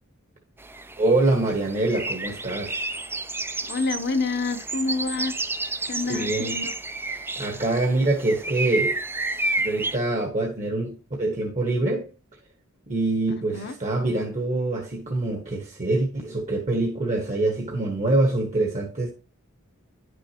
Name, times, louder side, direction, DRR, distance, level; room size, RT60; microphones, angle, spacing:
sound 1, 0.6-10.0, right 2 dB, 10° right, 0.4 m, -31 dB
voice 1, 1.0-2.9 6.1-6.6 7.1-9.0 9.6-12.1 12.9-19.1, right 2 dB, 35° right, 1.3 m, -25 dB
voice 2, 3.6-5.4 5.9-6.7 13.5-13.7, left 3 dB, 55° left, 0.8 m, -27 dB
10.5 x 6.3 x 2.9 m
head